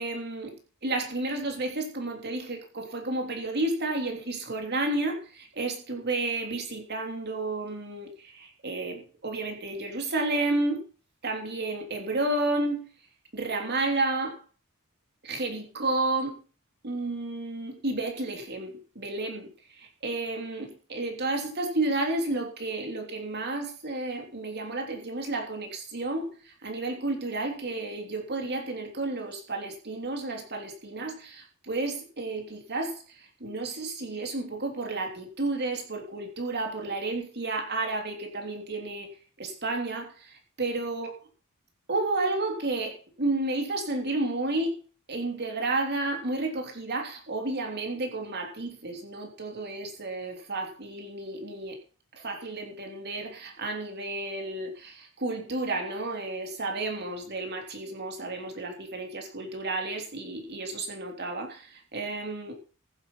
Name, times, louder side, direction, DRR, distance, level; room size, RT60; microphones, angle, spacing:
voice 1, 0.0-10.8 11.2-12.8 13.3-14.4 15.2-16.4 16.8-39.1 39.4-41.1 41.9-44.8 45.1-51.8 52.2-62.5, right 2 dB, 50° right, 3.3 m, -31 dB
14.5 x 8.1 x 5.7 m
head